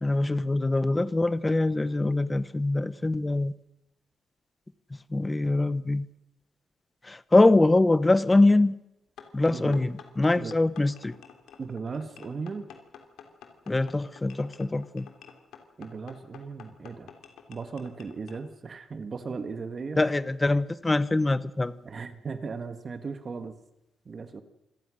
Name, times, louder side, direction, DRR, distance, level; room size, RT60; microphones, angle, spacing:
voice 1, 0.0-3.5 5.1-6.1 7.0-8.7 9.3-11.1 13.7-15.1 20.0-21.7, left 2 dB, 15° left, 16 dB, 0.9 m, -23 dB
sound 1, 9.2-18.4, left 7 dB, 90° left, 3.3 m, -50 dB
voice 2, 11.6-12.7 15.8-17.1 17.5-20.1 21.8-23.6 24.0-24.4, right 4 dB, 35° right, 10 dB, 1.6 m, -37 dB
26.0 x 18.5 x 6.4 m, 0.88 s
cardioid pair, 145°, 0 cm